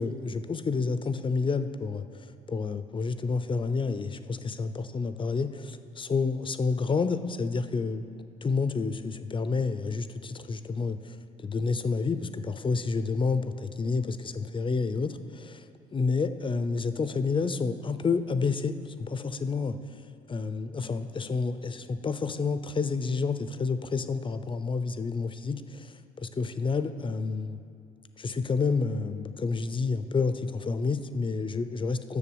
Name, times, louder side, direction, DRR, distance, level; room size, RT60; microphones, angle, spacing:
voice 1, 0.0-8.0 8.4-19.8 20.3-27.6 28.2-32.2, left 4 dB, 25° left, 11 dB, 0.6 m, -29 dB
8.3 x 6.5 x 7.0 m, 2.4 s
hypercardioid pair, 65°, 19 cm